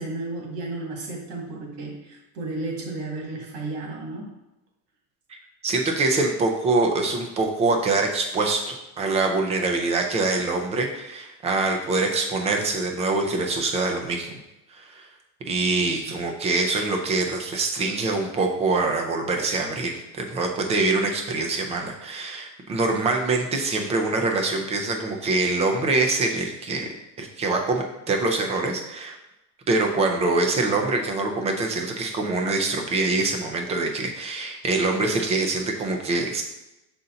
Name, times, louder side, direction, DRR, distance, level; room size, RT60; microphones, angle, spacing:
voice 1, 0.0-4.4 15.8-16.1, right 2 dB, 60° right, -1 dB, 2.1 m, -33 dB
voice 2, 5.6-14.4 14.7-15.1 15.4-26.9 27.2-29.2 29.7-36.4, right 3 dB, 15° right, 3 dB, 0.3 m, -24 dB
6.6 x 4.2 x 3.8 m, 0.93 s
supercardioid pair, 150°, 49 cm